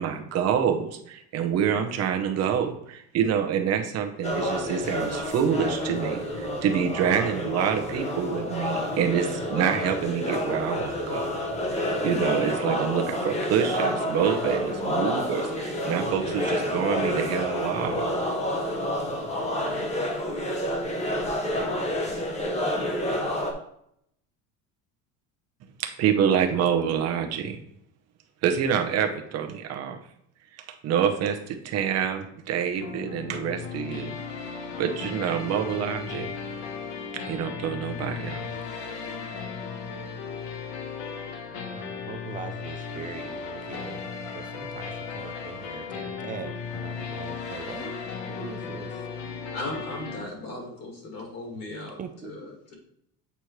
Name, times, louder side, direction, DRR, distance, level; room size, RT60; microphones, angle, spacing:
voice 1, 0.0-11.3 12.0-18.1 25.8-27.6 28.4-30.0 30.8-34.1 34.8-36.3 37.3-38.5, right 8 dB, 45° right, 5 dB, 0.9 m, -27 dB
sound 1, 4.2-23.5, left 1 dB, 20° left, 0.8 m, -29 dB
sound 2, 32.8-50.3, left 5 dB, 75° left, 1.1 m, -36 dB
voice 2, 41.5-44.1 44.3-48.0 48.3-48.9 52.0-52.5, right 7 dB, 25° right, 7 dB, 0.4 m, -41 dB
voice 3, 49.5-52.8, left 2 dB, 45° left, 0 dB, 2.2 m, -37 dB
8.1 x 4.4 x 3.2 m, 0.72 s
cardioid pair, 155°, 36 cm